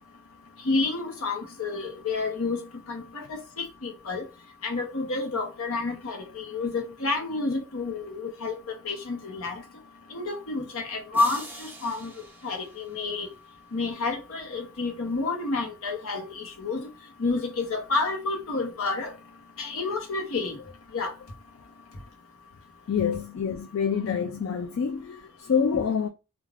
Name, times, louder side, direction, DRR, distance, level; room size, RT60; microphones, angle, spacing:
voice 1, 0.6-2.6 2.9-4.2 4.6-8.6 8.8-9.6 10.1-12.1 12.4-13.3 13.7-16.9 17.2-19.1 19.6-20.6 20.9-21.1 25.7-25.8, left 3 dB, 75° left, 0.9 m, -29 dB
sound 1, 11.1-13.5, right 3 dB, 10° right, 0.4 m, -44 dB
voice 2, 22.9-26.1, left 7 dB, 60° left, 0.3 m, -27 dB
2.4 x 2.4 x 3.1 m
head